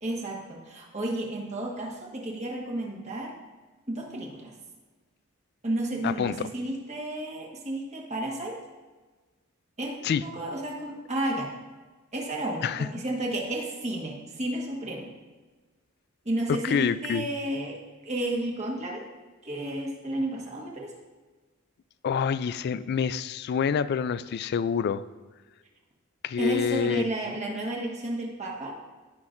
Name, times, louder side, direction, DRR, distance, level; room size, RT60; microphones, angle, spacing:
voice 1, 0.0-3.3 3.9-4.5 5.6-8.6 9.8-11.5 12.1-15.1 16.2-19.0 19.4-21.0 26.4-28.8, right 1 dB, 35° right, -1 dB, 1.5 m, -32 dB
voice 2, 6.0-6.5 10.0-10.2 12.6-12.9 16.5-17.3 22.0-25.0 26.2-27.1, left 7 dB, 50° left, 16 dB, 0.3 m, -27 dB
15.0 x 5.9 x 2.6 m, 1.3 s
head